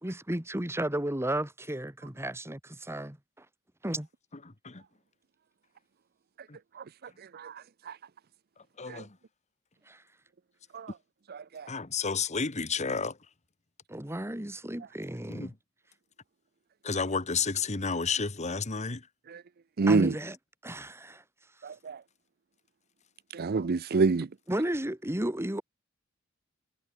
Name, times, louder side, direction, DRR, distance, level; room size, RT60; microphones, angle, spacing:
voice 1, 0.0-3.5 3.8-4.1 9.9-10.0 13.9-15.6 19.9-20.4 20.6-21.2 24.5-25.6, right 1 dB, 15° right, 2.0 m, -33 dB
voice 2, 7.3-8.0 8.9-9.0 10.7-10.9 11.3-11.7 19.3-19.4 19.8-20.1 21.6-22.0 23.3-24.3, right 4 dB, 50° right, 0.5 m, -28 dB
voice 3, 8.8-9.1 11.7-13.2 15.3-15.5 16.8-19.0, left 5 dB, 35° left, 1.4 m, -31 dB
head